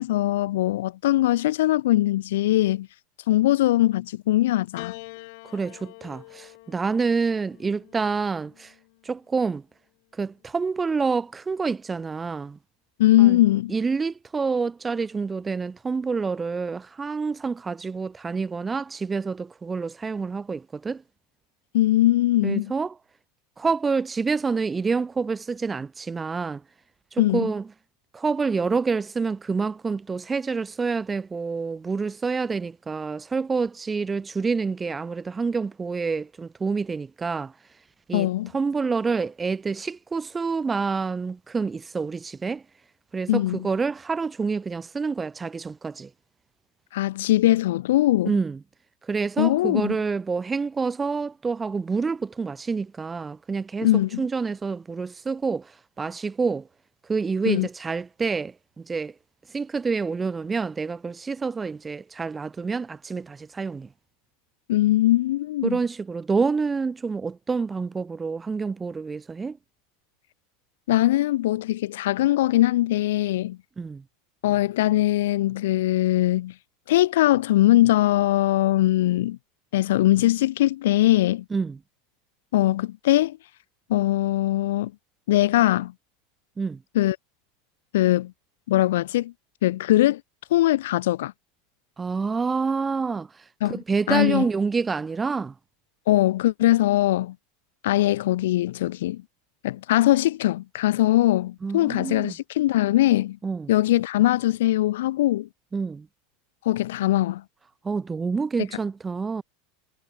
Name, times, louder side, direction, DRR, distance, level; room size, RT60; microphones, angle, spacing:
voice 1, 0.0-2.9 3.3-4.9 13.0-13.7 21.7-22.7 27.2-27.5 38.1-38.5 43.3-43.6 46.9-48.3 49.4-50.0 53.8-54.2 57.4-57.7 64.7-65.8 70.9-73.6 74.4-76.5 76.9-79.4 79.7-81.4 82.5-83.4 83.9-84.9 85.3-85.9 86.9-87.2 87.9-88.3 88.7-89.3 89.6-90.2 90.5-91.3 93.6-93.8 94.1-94.5 96.1-97.4 97.8-99.2 99.6-103.4 103.7-105.5 106.6-107.4, left 15 dB, 85° left, 0.5 m, -21 dB
Piano, 4.8-9.3 10.3-11.0, left 27 dB, 60° left, 6.9 m, -45 dB
voice 2, 5.5-8.7 9.0-9.6 10.1-12.6 13.2-13.4 13.7-21.0 22.4-22.9 23.6-26.6 27.1-27.6 28.1-37.5 38.1-38.3 38.5-42.6 43.1-46.1 48.3-48.6 49.0-53.9 54.2-56.7 57.1-59.1 59.5-63.9 65.6-69.6 73.8-74.0 81.5-81.8 86.6-86.8 92.0-95.5 101.6-102.3 103.4-103.7 105.7-106.1 107.8-109.4, right 4 dB, 15° right, 0.6 m, -27 dB
supercardioid pair, 145°, 0 cm